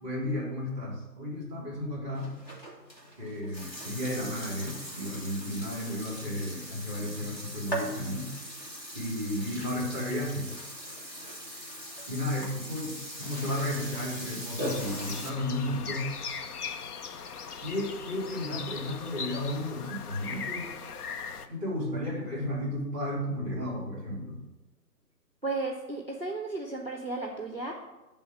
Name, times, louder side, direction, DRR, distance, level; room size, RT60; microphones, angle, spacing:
voice 1, 0.0-2.3 3.2-8.3 8.9-10.5 12.1-16.1 17.6-20.7 21.5-24.4, left 1 dB, 10° left, -2 dB, 2.0 m, -33 dB
Burping eructation, 2.2-15.3, right 1 dB, 25° left, 1.2 m, -40 dB
sound 1, 14.7-21.5, left 6 dB, 65° left, 0.7 m, -39 dB
voice 2, 25.4-27.7, right 3 dB, 40° right, 2 dB, 0.5 m, -34 dB
8.8 x 3.5 x 5.9 m, 1.1 s
hypercardioid pair, 180°, 49 cm